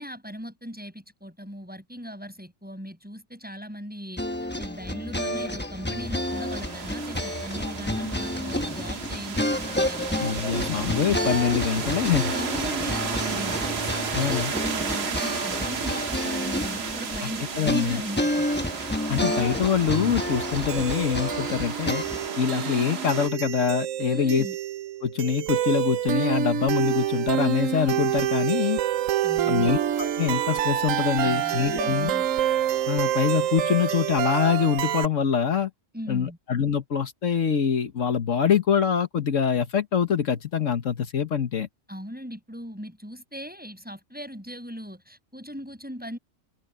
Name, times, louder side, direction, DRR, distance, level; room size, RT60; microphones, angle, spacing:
voice 1, 0.0-4.2 4.6-10.9 12.3-18.5 24.1-24.6 29.2-29.8 31.2-32.3 35.9-36.4 41.9-46.2, equal, 5° right, 7.2 m, -38 dB
sound 1, 4.2-22.3, left 1 dB, 10° left, 0.9 m, -30 dB
sound 2, 5.9-23.3, right 5 dB, 55° right, 1.4 m, -33 dB
voice 2, 10.2-12.3 14.1-14.5 17.6-18.0 19.1-22.0 22.4-24.5 25.0-28.8 29.5-32.1 32.9-35.7 36.1-41.7, left 7 dB, 75° left, 1.6 m, -24 dB
sound 3, 20.7-35.1, right 11 dB, 85° right, 1.1 m, -27 dB
open air
omnidirectional pair, 1.3 m